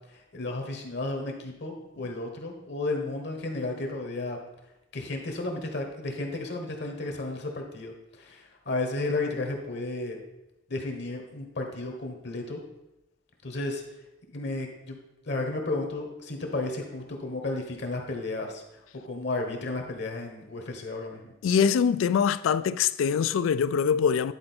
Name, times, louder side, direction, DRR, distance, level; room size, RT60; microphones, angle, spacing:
voice 1, 0.3-4.4 4.9-10.2 10.7-12.6 13.4-13.8 14.3-15.0 15.3-18.6 19.0-21.3, left 2 dB, 60° left, 1.2 m, -33 dB
voice 2, 21.4-24.3, left 7 dB, 90° left, 0.3 m, -23 dB
10.0 x 4.2 x 4.3 m
head